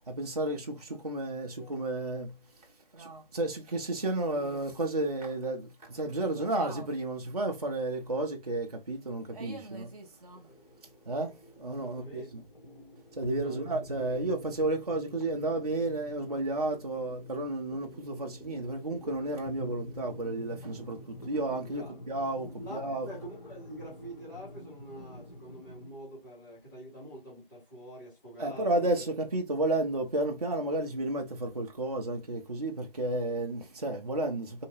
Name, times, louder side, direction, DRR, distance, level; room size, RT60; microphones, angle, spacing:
voice 1, 0.1-2.4 2.9-10.5 11.1-12.4 13.2-23.1 28.4-34.7, right 2 dB, 45° right, 0.4 m, -32 dB
sound 1, 9.2-25.9, left 1 dB, 50° left, 1.0 m, -47 dB
voice 2, 11.7-12.3 13.4-13.6 14.0-14.3 21.7-22.0 22.6-29.0, equal, 20° left, 1.7 m, -46 dB
2.8 x 2.7 x 2.9 m
figure-of-eight pair, 165°, 29 cm